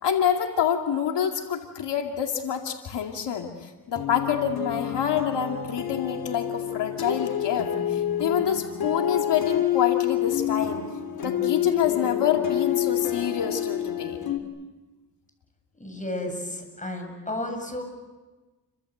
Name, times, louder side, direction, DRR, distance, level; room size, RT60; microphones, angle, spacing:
voice 1, 0.0-10.8 11.2-14.2, left 8 dB, 80° left, 3 dB, 2.5 m, -27 dB
sound 1, 3.9-14.4, left 11 dB, 60° left, 3.2 m, -28 dB
voice 2, 15.8-17.8, left 1 dB, 20° left, 4 dB, 8.0 m, -32 dB
30.0 x 24.5 x 8.0 m, 1.2 s
cardioid pair, 95°, 41 cm